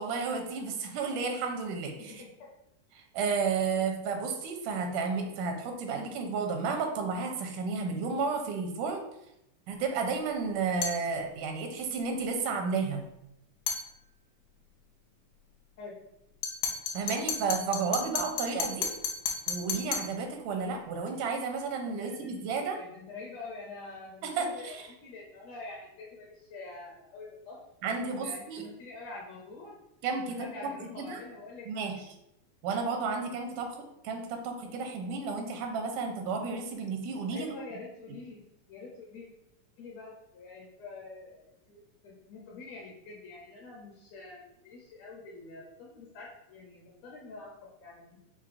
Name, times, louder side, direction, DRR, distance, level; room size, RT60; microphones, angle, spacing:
voice 1, 0.0-2.2 2.9-9.1 9.7-13.0 16.9-18.9 19.5-22.8 24.2-24.9 27.8-28.6 30.0-31.2 31.7-31.9 32.6-33.8 34.0-37.5, right 5 dB, 85° right, 3 dB, 2.1 m, -32 dB
voice 2, 2.0-2.5 15.8-16.0 21.9-27.6 27.9-29.7 30.3-32.0 37.3-38.4 38.7-39.3 39.8-48.2, left 3 dB, 75° left, -3 dB, 1.7 m, -46 dB
sound 1, 10.8-11.1 13.7-13.9 16.4-20.2, left 6 dB, 90° left, 2.3 m, -33 dB
6.8 x 2.7 x 2.5 m, 0.84 s
omnidirectional pair, 3.7 m